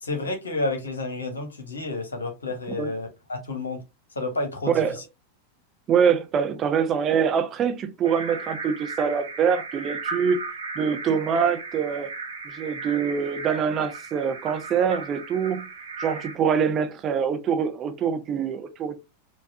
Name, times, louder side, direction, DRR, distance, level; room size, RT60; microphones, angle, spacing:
voice 1, 0.0-3.8 4.1-4.7, left 2 dB, 70° left, 1.1 m, -30 dB
voice 2, 4.7-5.0 5.9-10.4 10.8-12.1 12.4-15.7 16.0-19.0, right 7 dB, 30° right, 0.6 m, -24 dB
sound 1, 8.0-16.3, right 4 dB, 70° right, 1.0 m, -36 dB
4.6 x 2.4 x 2.6 m
figure-of-eight pair, 90°, 0 cm